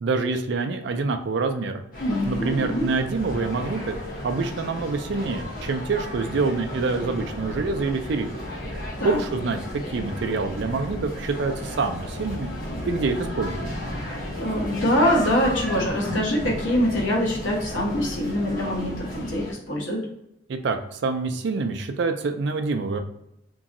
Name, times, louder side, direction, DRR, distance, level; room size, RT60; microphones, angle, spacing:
voice 1, 0.0-1.8 2.3-4.0 4.2-8.3 9.0-12.5 12.9-13.7 20.5-23.0, right 3 dB, 55° right, 6 dB, 0.4 m, -26 dB
sound 1, 1.9-19.5, left 1 dB, 45° left, 0.9 m, -34 dB
voice 2, 2.0-2.9 9.0-9.2 14.1-20.1, equal, 70° left, -2 dB, 1.0 m, -24 dB
3.0 x 2.7 x 2.5 m, 0.80 s
head